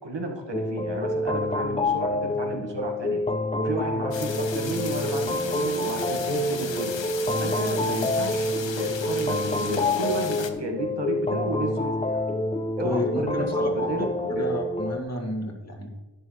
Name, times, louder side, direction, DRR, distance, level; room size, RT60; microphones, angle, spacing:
voice 1, 0.0-3.2 3.6-6.9 7.4-12.2 12.8-14.1 14.3-14.4, right 2 dB, 80° right, 2 dB, 1.8 m, -33 dB
sound 1, 0.5-15.0, left 1 dB, 15° left, 0.6 m, -27 dB
sound 2, 4.1-10.5, left 6 dB, 85° left, 0.8 m, -35 dB
voice 2, 12.8-13.7 14.4-16.0, left 1 dB, 35° left, 1 dB, 2.0 m, -30 dB
11.5 x 10.0 x 3.2 m, 1.1 s
wide cardioid pair, 65°, 43 cm